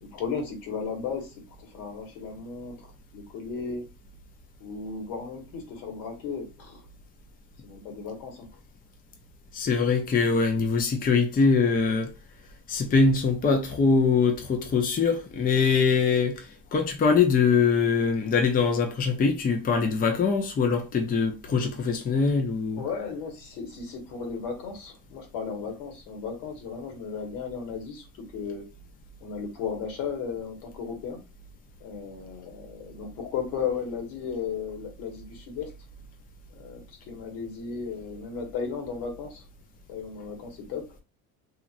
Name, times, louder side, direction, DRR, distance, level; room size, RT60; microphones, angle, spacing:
voice 1, 0.0-3.8 4.6-6.8 7.6-8.5 22.7-28.0 28.3-28.6 29.2-31.2 31.8-35.7 36.5-39.4 39.9-40.8, left 6 dB, 70° left, 1.3 m, -35 dB
voice 2, 9.5-12.1 12.7-22.8, left 5 dB, 25° left, 0.6 m, -23 dB
3.0 x 2.4 x 2.4 m
supercardioid pair, 100°, 36 cm